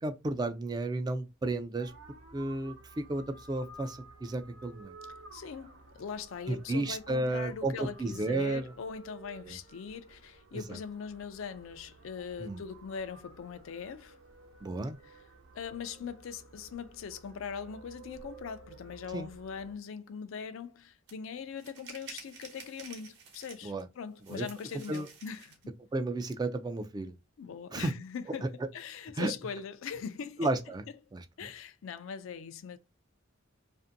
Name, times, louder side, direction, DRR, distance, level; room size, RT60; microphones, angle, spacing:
voice 1, 0.0-1.9 2.3-4.9 6.5-8.7 9.5-9.6 10.5-10.8 12.4-12.6 14.6-15.0 19.1-19.3 23.6-23.9 24.3-24.4 24.9-25.1 25.9-27.1 27.7-27.9 28.4-28.5 29.2-29.3 30.4-30.8 31.1-31.2, right 2 dB, 20° right, 0.3 m, -33 dB
sound 1, 1.8-19.7, right 3 dB, 90° right, 0.9 m, -54 dB
voice 2, 5.3-14.2 15.1-15.2 15.5-25.6 27.4-30.5 31.4-32.8, left 6 dB, 80° left, 0.4 m, -41 dB
sound 2, 21.1-21.2 21.6-23.8 24.2-25.6, right 5 dB, 60° right, 0.9 m, -50 dB
2.6 x 2.5 x 2.5 m
head